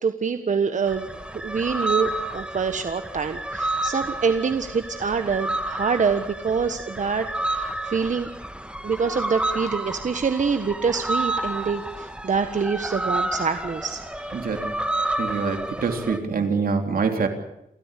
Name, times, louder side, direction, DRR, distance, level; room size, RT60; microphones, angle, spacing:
voice 1, 0.0-8.3 8.8-14.4, right 5 dB, 60° right, 8 dB, 1.4 m, -26 dB
sound 1, 0.9-16.2, right 1 dB, 5° right, 2.1 m, -30 dB
voice 2, 14.3-14.7 15.2-17.3, right 5 dB, 85° right, 5 dB, 3.5 m, -25 dB
29.5 x 14.0 x 8.4 m, 0.84 s
wide cardioid pair, 95°, 15 cm